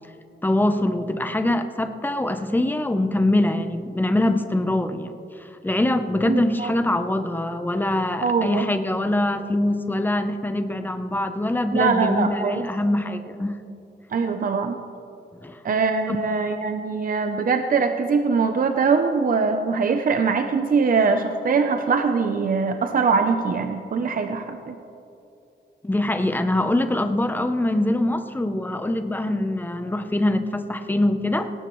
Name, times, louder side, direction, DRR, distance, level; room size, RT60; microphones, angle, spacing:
voice 1, 0.4-5.1 5.4-13.6 15.3-15.6 16.1-16.2 25.8-31.5, left 1 dB, 10° left, 8 dB, 0.6 m, -23 dB
voice 2, 6.3-6.7 8.2-8.7 11.7-12.6 14.1-14.8 15.6-24.8, right 5 dB, 50° right, 6 dB, 0.6 m, -22 dB
18.5 x 17.5 x 3.1 m, 2.9 s
wide cardioid pair, 175°, 19 cm